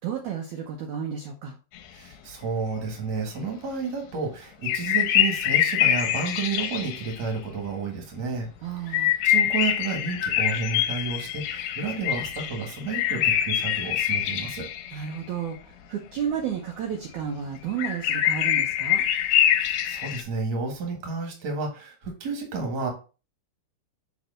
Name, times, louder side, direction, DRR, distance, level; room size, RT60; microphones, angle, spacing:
voice 1, 0.0-1.6 8.6-9.1 14.9-19.0, right 8 dB, 80° right, 2 dB, 1.7 m, -32 dB
voice 2, 1.9-8.5 8.8-14.7 19.1-22.9, right 4 dB, 45° right, 1 dB, 1.4 m, -31 dB
sound 1, 4.6-7.2 8.9-15.2 17.8-20.2, left 11 dB, 80° left, 2.4 m, -24 dB
6.5 x 3.1 x 5.0 m, 0.33 s
omnidirectional pair, 4.4 m